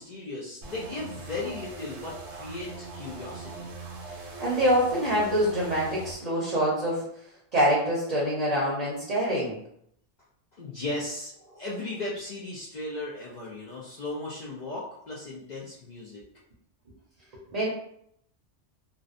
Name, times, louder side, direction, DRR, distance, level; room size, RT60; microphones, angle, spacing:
voice 1, 0.0-3.7 10.6-11.3 11.6-16.2, left 2 dB, 60° left, -6 dB, 0.4 m, -36 dB
sound 1, 0.6-6.1, right 3 dB, 70° right, 0.8 m, -41 dB
voice 2, 4.4-7.0 7.5-9.6 17.5-17.7, equal, 45° right, -5 dB, 0.6 m, -25 dB
2.6 x 2.0 x 2.4 m, 0.72 s
omnidirectional pair, 1.2 m